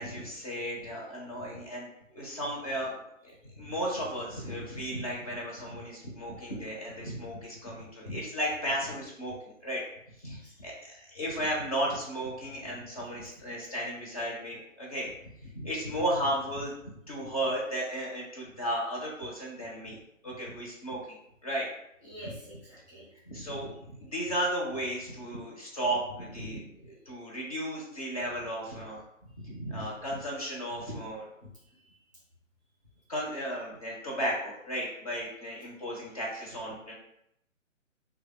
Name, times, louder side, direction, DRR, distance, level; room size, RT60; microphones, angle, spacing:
voice 1, 0.0-9.8 10.2-15.1 15.5-16.7 17.1-20.0 20.2-21.2 21.4-21.7 23.3-29.0 29.4-31.3 33.1-36.9, equal, 30° left, -3 dB, 0.7 m, -34 dB
voice 2, 10.3-10.7 14.2-14.3 22.0-23.1 31.5-32.0, right 1 dB, 15° right, -8 dB, 0.5 m, -48 dB
3.2 x 2.3 x 3.5 m, 0.77 s
figure-of-eight pair, 135°, 40 cm